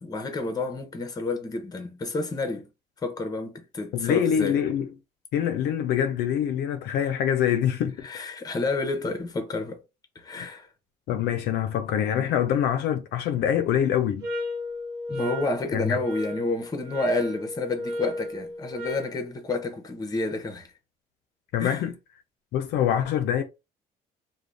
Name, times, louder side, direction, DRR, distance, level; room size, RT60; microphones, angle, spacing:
voice 1, 0.0-2.7 3.0-4.6 8.0-9.8 10.2-10.7 15.1-20.7 21.6-21.8, left 3 dB, 20° left, 0.7 m, -30 dB
voice 2, 3.9-4.9 5.3-8.1 10.4-10.5 11.1-14.3 15.7-16.0 21.5-21.9 22.5-23.4, left 9 dB, 75° left, 0.4 m, -25 dB
sound 1, 14.2-19.2, left 1 dB, 75° right, 0.9 m, -35 dB
2.5 x 2.1 x 3.1 m
cardioid pair, 110°, 17 cm